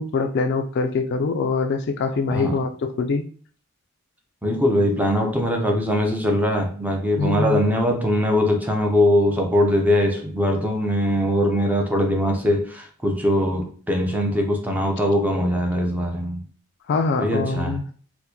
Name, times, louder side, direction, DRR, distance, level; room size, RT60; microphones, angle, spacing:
voice 1, 0.0-3.2 7.2-7.6 16.9-17.8, left 4 dB, 50° left, 0.3 m, -23 dB
voice 2, 4.4-16.4 17.2-17.8, equal, 5° right, 0.5 m, -21 dB
4.3 x 2.2 x 2.7 m
head